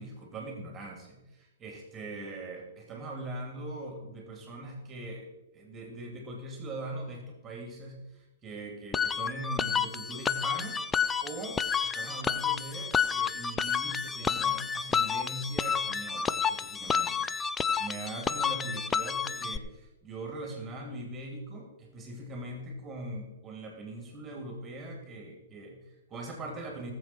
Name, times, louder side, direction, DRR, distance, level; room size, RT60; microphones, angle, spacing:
voice 1, 0.0-17.3 17.8-26.9, right 2 dB, 20° right, 1 dB, 3.2 m, -41 dB
sound 1, 8.9-19.6, left 6 dB, 15° left, 0.6 m, -30 dB
19.0 x 7.7 x 4.7 m, 0.99 s
figure-of-eight pair, 115°, 0 cm